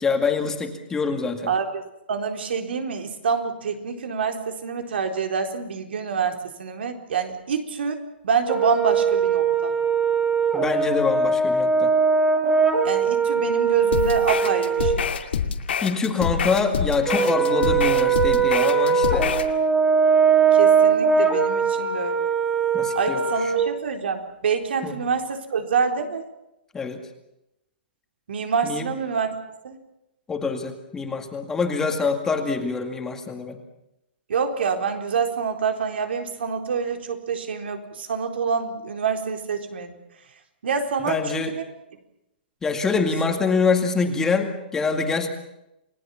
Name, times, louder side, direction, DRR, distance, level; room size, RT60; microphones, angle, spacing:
voice 1, 0.0-1.5 10.5-11.9 15.8-19.3 22.7-23.5 24.8-24.9 26.7-27.0 28.6-28.9 30.3-33.6 41.0-41.5 42.6-45.3, left 4 dB, 10° left, 5 dB, 2.2 m, -25 dB
voice 2, 1.5-1.8 2.1-9.7 12.8-15.1 20.5-22.3 22.9-26.2 28.3-29.3 29.6-29.8 34.3-39.9 40.6-41.6, right 6 dB, 85° right, 5 dB, 4.1 m, -26 dB
Brass instrument, 8.5-15.0 17.1-23.6, right 5 dB, 10° right, 2.8 m, -20 dB
sound 1, 13.9-19.5, left 7 dB, 85° left, 2.4 m, -26 dB
29.5 x 18.5 x 7.2 m, 0.87 s
hypercardioid pair, 165°, 6 cm